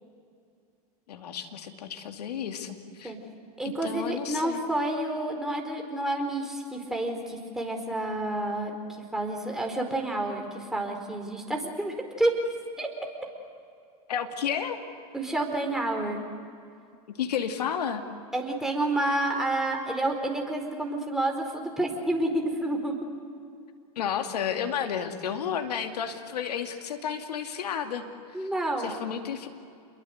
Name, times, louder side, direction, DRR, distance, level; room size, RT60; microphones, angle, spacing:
voice 1, 1.1-3.1 3.6-4.6 14.1-14.8 17.2-18.0 24.0-28.0 28.4-28.5 28.8-29.5, left 8 dB, 80° left, 5 dB, 2.6 m, -32 dB
voice 2, 3.6-8.7 9.1-12.3 12.8-12.9 15.1-16.2 18.3-22.9 28.3-28.9, right 1 dB, ahead, 1 dB, 4.7 m, -29 dB
28.0 x 22.5 x 8.0 m, 2.4 s
hypercardioid pair, 110°, 20 cm